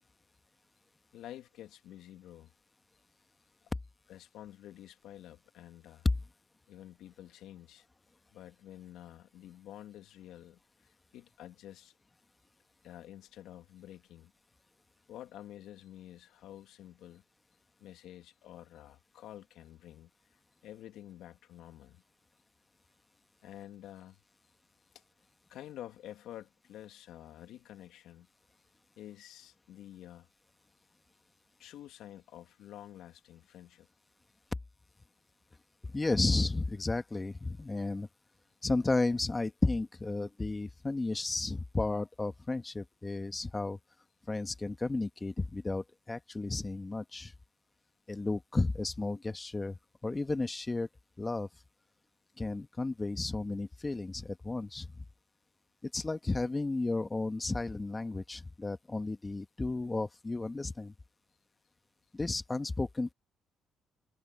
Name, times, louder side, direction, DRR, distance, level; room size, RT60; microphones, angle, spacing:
voice 1, 1.1-2.5 4.1-6.1 6.7-7.9 8.3-12.0 12.8-14.3 15.1-17.2 17.8-22.0 23.4-24.2 24.9-25.0 25.5-28.3 29.0-30.3 31.6-33.9, left 12 dB, 80° left, 1.8 m, -50 dB
voice 2, 35.9-38.1 38.6-43.8 44.3-47.3 48.1-49.8 50.0-50.9 51.2-51.5 52.4-55.0 55.8-60.9 62.1-63.1, left 3 dB, 20° left, 1.6 m, -33 dB
cardioid pair, 80°, 0 cm